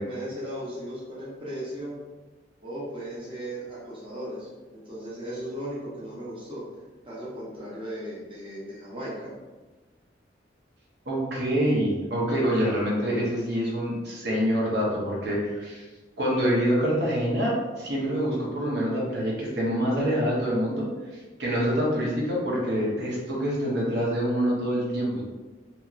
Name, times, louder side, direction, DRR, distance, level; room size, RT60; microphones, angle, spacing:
voice 1, 0.0-1.9 2.6-6.6 7.1-9.3, equal, 30° right, -7 dB, 0.7 m, -36 dB
voice 2, 11.1-15.8 16.2-20.9 21.4-25.2, equal, 65° right, -4 dB, 0.8 m, -26 dB
2.8 x 2.8 x 2.4 m, 1.3 s
head